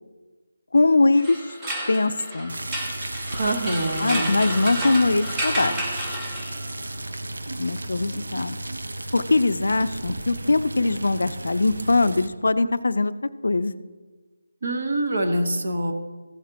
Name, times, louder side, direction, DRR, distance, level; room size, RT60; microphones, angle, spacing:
voice 1, 0.7-1.4 1.9-2.5 4.0-5.8 7.6-8.6 9.1-13.1 13.4-13.7, left 3 dB, 65° left, 13 dB, 0.4 m, -21 dB
sound 1, 1.1-6.8, right 1 dB, 10° right, 0.6 m, -31 dB
sound 2, 2.5-12.3, right 1 dB, 85° right, 0.7 m, -34 dB
voice 2, 3.3-4.3 14.6-15.9, right 1 dB, 45° right, 5 dB, 1.1 m, -25 dB
15.0 x 7.4 x 2.9 m, 1.3 s
figure-of-eight pair, 180°, 0 cm